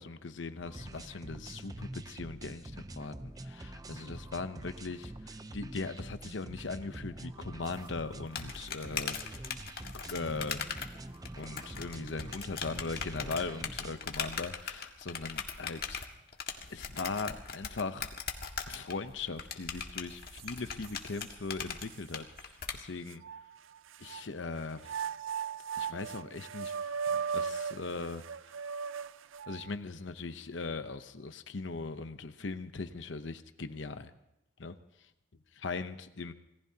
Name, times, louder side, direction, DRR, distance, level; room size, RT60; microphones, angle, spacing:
voice 1, 0.0-9.4 9.9-10.6 11.4-16.0 16.7-18.1 18.7-23.2 24.0-24.8 25.8-26.8 27.1-28.2 29.5-34.1 34.6-34.7 35.5-36.3, left 3 dB, 75° left, 10 dB, 0.8 m, -39 dB
sound 1, 0.6-13.9, right 1 dB, 20° right, 0.6 m, -46 dB
sound 2, 7.7-22.7, left 6 dB, 50° left, 1.8 m, -40 dB
sound 3, 19.8-19.9 20.3-21.3 21.9-22.0 23.1-24.2 24.8-29.7, right 6 dB, 90° right, 0.5 m, -37 dB
27.0 x 18.5 x 2.8 m, 0.90 s
head